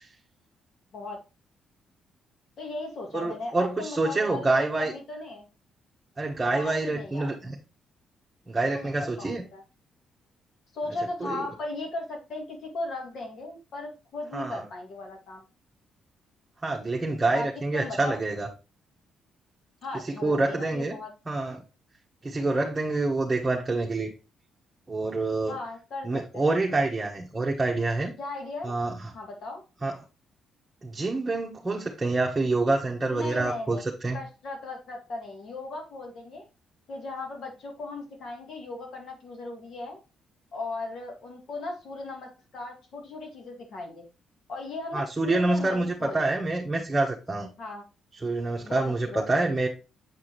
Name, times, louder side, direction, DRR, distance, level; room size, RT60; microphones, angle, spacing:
voice 1, 2.6-5.5 6.5-7.4 8.6-9.6 10.7-15.4 17.3-18.2 19.8-21.1 25.5-26.4 28.2-28.8 29.1-29.6 33.1-33.8 34.1-36.5 36.9-40.0 40.5-44.1 44.5-46.4 47.6-47.8 48.6-49.4, left 2 dB, 65° left, 2 dB, 2.2 m, -37 dB
voice 2, 3.1-4.9 6.2-7.5 8.5-9.4 11.2-11.4 14.3-14.6 16.6-18.5 20.0-20.9 21.3-21.6 22.2-24.1 24.9-25.6 26.0-28.1 28.6-28.9 29.8-29.9 30.8-34.2 44.9-47.5 48.2-49.7, right 2 dB, 20° right, -2 dB, 1.2 m, -27 dB
7.4 x 4.8 x 3.0 m, 0.30 s
cardioid pair, 90°, 0 cm